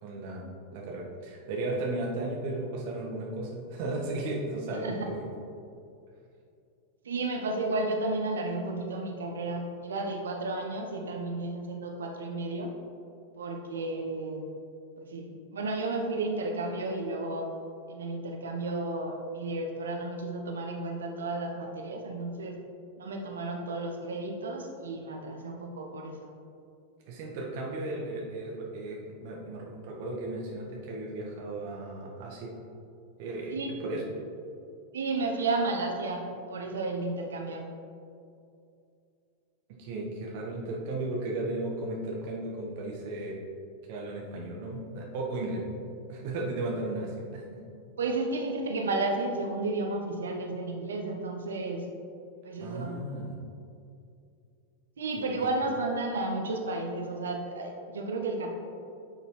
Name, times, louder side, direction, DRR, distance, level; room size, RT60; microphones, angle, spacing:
voice 1, 0.0-5.2 27.1-32.5 33.2-34.0 39.8-43.4 43.9-45.6 46.1-47.6 52.6-53.4 55.2-55.5, right 2 dB, 50° right, -2 dB, 1.6 m, -35 dB
voice 2, 7.0-12.7 13.4-14.4 15.0-17.5 17.9-22.5 23.0-26.3 33.5-33.7 34.9-37.7 48.0-51.8 52.4-53.0 55.0-58.5, right 2 dB, 65° right, 2 dB, 0.9 m, -32 dB
10.5 x 6.5 x 3.2 m, 2.5 s
figure-of-eight pair, 90°, 0 cm